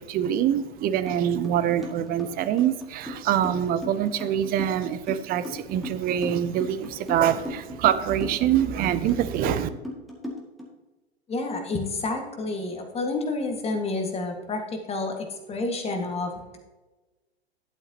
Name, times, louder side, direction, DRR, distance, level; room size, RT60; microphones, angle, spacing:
voice 1, 0.0-9.7, right 10 dB, 30° right, 12 dB, 0.6 m, -25 dB
sound 1, 1.1-1.2 1.4-10.7, left 1 dB, ahead, 2.1 m, -36 dB
voice 2, 11.3-16.6, left 3 dB, 20° left, 4 dB, 1.7 m, -29 dB
12.0 x 7.8 x 2.9 m, 1.2 s
figure-of-eight pair, 100°, 32 cm